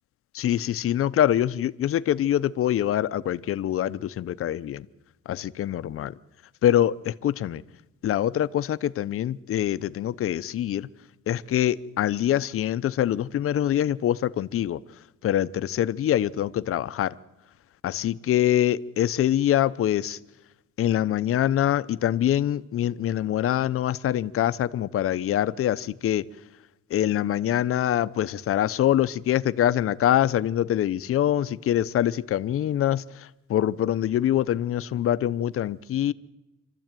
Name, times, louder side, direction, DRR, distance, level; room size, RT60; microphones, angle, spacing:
voice 1, 0.3-4.9 5.3-6.1 6.6-7.6 8.0-10.9 11.3-14.8 15.2-17.1 17.8-20.2 20.8-26.3 26.9-36.1, left 11 dB, 45° left, 15 dB, 0.7 m, -24 dB
26.5 x 13.5 x 9.0 m, 0.97 s
cardioid pair, 155°, 30 cm